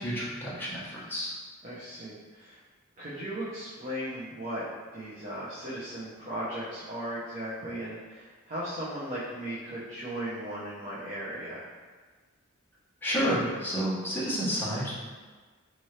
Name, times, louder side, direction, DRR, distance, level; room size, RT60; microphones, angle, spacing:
voice 1, 0.0-1.3 13.0-14.9, equal, 10° left, -8 dB, 1.0 m, -30 dB
voice 2, 1.6-2.6 3.0-4.6 4.9-11.7, right 1 dB, 40° right, -9 dB, 0.8 m, -37 dB
4.2 x 2.6 x 3.2 m, 1.4 s
head